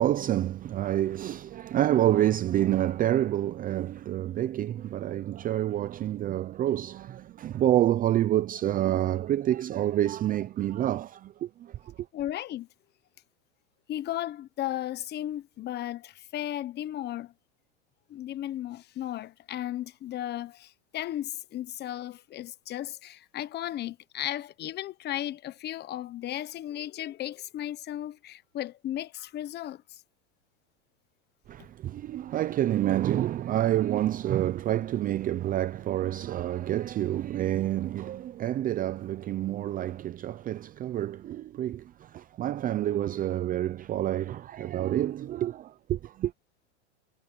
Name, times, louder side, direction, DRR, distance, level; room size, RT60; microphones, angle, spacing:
voice 1, 0.0-11.9 31.5-46.3, right 12 dB, 25° right, 0.6 m, -28 dB
voice 2, 12.1-12.7 13.9-17.3 18.1-30.0, left 13 dB, 30° left, 1.2 m, -35 dB
supercardioid pair, 125°, 35 cm